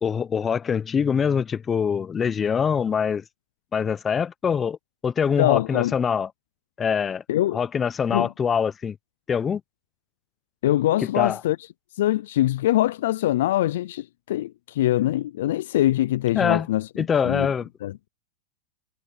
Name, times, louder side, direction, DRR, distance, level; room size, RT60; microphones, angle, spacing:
voice 1, 0.0-3.2 3.7-4.8 5.0-6.3 6.8-7.2 7.5-9.0 9.3-9.6 11.1-11.4 16.3-16.7 17.0-17.7, left 7 dB, 20° left, 0.8 m, -24 dB
voice 2, 5.4-5.9 7.3-7.6 8.1-8.3 10.6-11.6 12.0-17.5 17.8-18.1, left 14 dB, 70° left, 0.4 m, -23 dB
hypercardioid pair, 115°, 0 cm